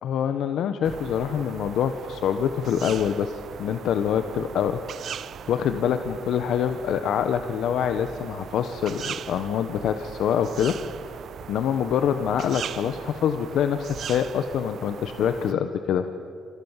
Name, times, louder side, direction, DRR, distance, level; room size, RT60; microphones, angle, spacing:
voice 1, 0.0-5.2 5.5-10.8 11.0-11.2 11.5-16.1, left 8 dB, 75° left, 8 dB, 1.2 m, -25 dB
sound 1, 0.8-15.5, right 8 dB, 60° right, 0.7 m, -39 dB
28.5 x 26.5 x 7.5 m, 2.5 s
cardioid pair, 90°, 0 cm